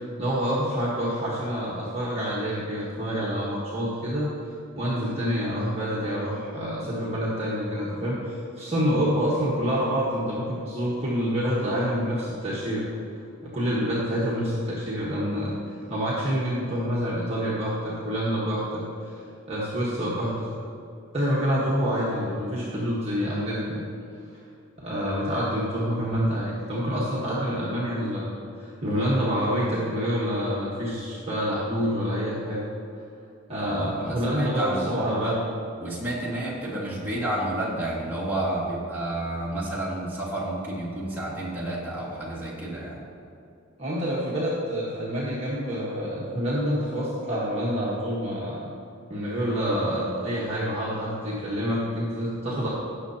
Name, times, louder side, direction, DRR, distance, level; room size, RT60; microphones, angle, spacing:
voice 1, 0.2-4.3 4.8-12.9 13.4-19.1 19.5-20.6 21.1-23.8 24.8-32.7 33.5-35.3 43.8-48.7 49.1-52.7, equal, 30° right, -7 dB, 1.3 m, -27 dB
voice 2, 33.6-35.4 35.8-43.0, right 1 dB, 10° right, -7 dB, 2.2 m, -30 dB
17.0 x 6.5 x 2.9 m, 2.6 s
head